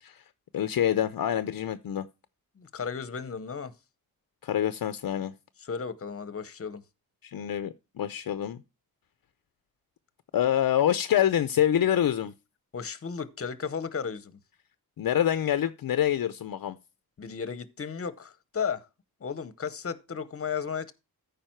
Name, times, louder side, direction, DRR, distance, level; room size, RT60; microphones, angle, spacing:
voice 1, 0.5-2.1 4.4-5.3 7.2-8.6 10.3-12.3 15.0-16.8, left 10 dB, 65° left, 0.6 m, -26 dB
voice 2, 2.6-3.7 5.6-6.8 12.7-14.3 17.2-18.8 19.2-20.9, left 6 dB, 35° left, 0.8 m, -34 dB
13.5 x 5.0 x 4.4 m
wide cardioid pair, 170°, 38 cm